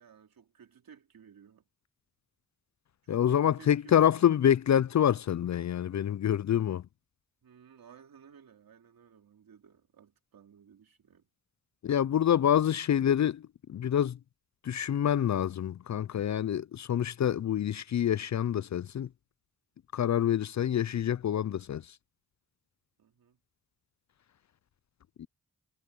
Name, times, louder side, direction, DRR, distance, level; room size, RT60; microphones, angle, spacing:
voice 1, 0.0-1.6 3.0-4.5 7.4-11.3 23.0-23.4, right 7 dB, 90° right, 3.8 m, -56 dB
voice 2, 3.1-6.8 11.8-14.2 14.6-19.1 19.9-21.8 25.2-25.3, left 10 dB, 55° left, 0.5 m, -27 dB
cardioid pair, 55°, 34 cm